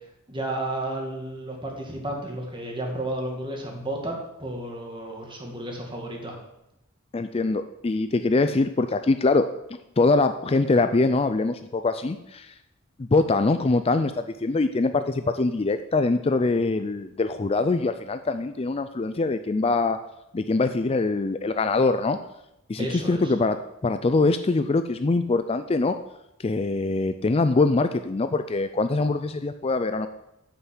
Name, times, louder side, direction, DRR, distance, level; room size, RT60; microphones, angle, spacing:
voice 1, 0.3-4.1 4.4-6.4 22.8-23.3, right 1 dB, 25° right, 1 dB, 2.2 m, -32 dB
voice 2, 7.1-9.5 10.0-12.5 13.0-20.0 20.3-22.2 22.7-23.6 23.8-26.0 26.4-30.1, left 3 dB, 30° left, 9 dB, 0.4 m, -23 dB
9.9 x 5.7 x 7.9 m, 0.87 s
head